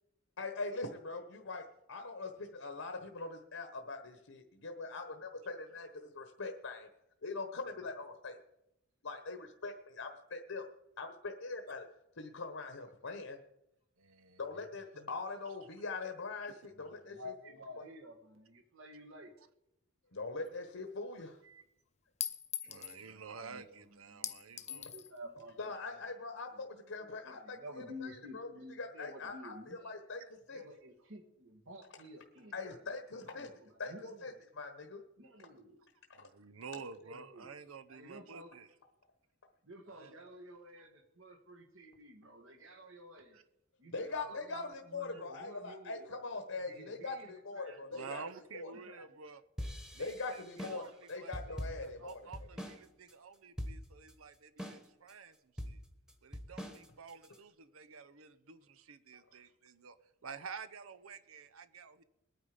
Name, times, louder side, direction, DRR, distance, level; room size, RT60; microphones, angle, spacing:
voice 1, 0.4-6.9 7.2-8.4 9.0-10.6 11.0-11.9 12.2-13.4 14.4-17.3 20.1-21.4 25.6-28.5 28.8-30.2 30.5-30.6 32.5-33.5 33.8-33.9 34.2-34.3 34.6-35.0 36.2-36.3 43.9-48.2 48.5-48.7 50.0-50.8 51.1-52.2, left 3 dB, 70° left, 5 dB, 1.2 m, -42 dB
voice 2, 14.0-14.4 14.9-15.1 22.6-24.9 36.1-38.7 39.9-40.3 43.3-43.4 44.1-44.5 47.7-49.4 49.9-55.4 55.7-55.8 56.2-60.0 60.2-62.0, right 5 dB, 85° right, 12 dB, 0.8 m, -50 dB
voice 3, 17.1-19.4 21.4-21.6 22.6-26.0 26.5-30.2 30.5-32.9 33.3-34.4 35.2-35.8 36.8-37.5 37.9-38.5 39.6-43.5 43.8-46.2 46.5-48.3 48.7-49.2, left 1 dB, 70° right, 5 dB, 2.1 m, -52 dB
Chink clink, 20.5-20.6 22.2-23.0 24.2-25.1, left 10 dB, 35° left, 0.8 m, -40 dB
sound 1, 49.6-52.8 53.1-53.2 53.6-54.1 54.6-55.1 55.6-57.4, equal, 5° right, 1.2 m, -43 dB
21.0 x 9.3 x 5.0 m, 0.86 s
head